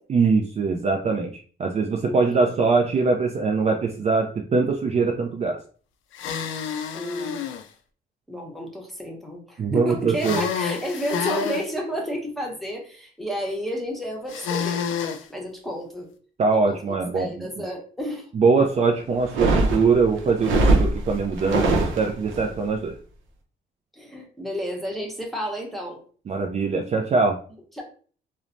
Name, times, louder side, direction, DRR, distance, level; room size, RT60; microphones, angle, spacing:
voice 1, 0.1-5.6 9.6-10.4 16.4-17.5 18.3-22.9 26.3-27.4, right 4 dB, 35° right, 1 dB, 0.4 m, -22 dB
voice 2, 2.0-2.5 3.0-3.1 6.9-7.4 8.3-14.8 15.3-16.1 16.6-16.8 17.1-18.3 18.5-18.6 23.9-26.0 27.8-27.9, equal, ahead, 0 dB, 0.8 m, -31 dB
sound 1, 6.1-7.6 10.2-11.7 14.3-15.2, left 7 dB, 80° left, 0.4 m, -28 dB
sound 2, 19.2-22.4, right 2 dB, 80° right, 0.6 m, -22 dB
3.1 x 2.0 x 2.5 m, 0.42 s
cardioid pair, 90°, 20 cm